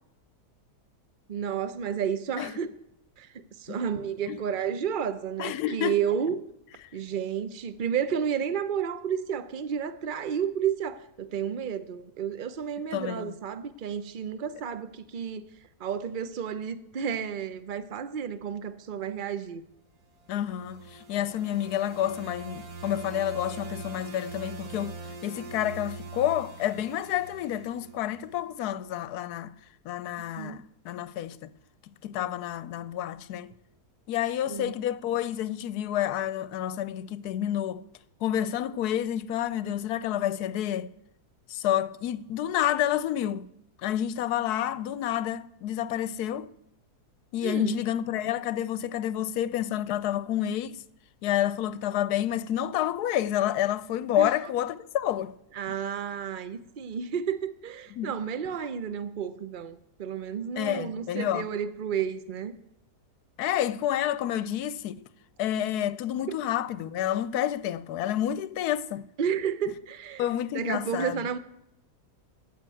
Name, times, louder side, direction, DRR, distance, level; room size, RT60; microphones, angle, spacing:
voice 1, 1.3-2.7 3.2-6.4 6.9-15.4 15.8-19.6 30.4-30.6 34.4-34.7 47.4-47.8 54.2-54.3 55.5-62.5 66.3-66.4 69.2-70.2 70.5-71.4, right 8 dB, 45° right, 0.7 m, -31 dB
voice 2, 5.4-6.0 12.9-13.3 20.3-29.5 29.8-31.4 32.0-33.5 34.1-37.8 38.2-40.9 41.5-43.5 43.8-46.5 47.3-50.8 51.2-55.3 58.0-58.1 60.6-61.5 63.4-65.0 65.4-69.1 70.2-71.2, left 11 dB, 75° left, 1.1 m, -29 dB
sound 1, 20.2-28.4, right 3 dB, 65° right, 1.8 m, -42 dB
15.0 x 5.6 x 8.9 m
omnidirectional pair, 1.7 m